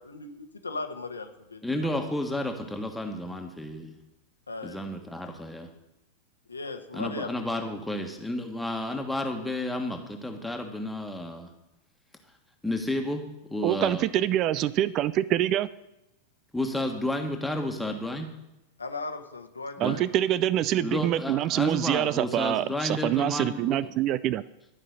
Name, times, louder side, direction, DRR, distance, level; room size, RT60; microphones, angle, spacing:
voice 1, 0.0-1.9 4.5-4.8 6.5-7.3 18.8-20.0, left 3 dB, 80° left, 5 dB, 1.3 m, -37 dB
voice 2, 1.6-3.9 4.6-5.7 6.9-11.5 12.6-14.0 16.5-18.3 19.8-20.0 20.8-23.9, left 1 dB, 5° left, 3 dB, 1.6 m, -31 dB
voice 3, 13.6-15.7 19.8-24.4, right 12 dB, 35° right, 18 dB, 0.4 m, -25 dB
12.5 x 5.6 x 7.8 m, 0.94 s
figure-of-eight pair, 90°, 0 cm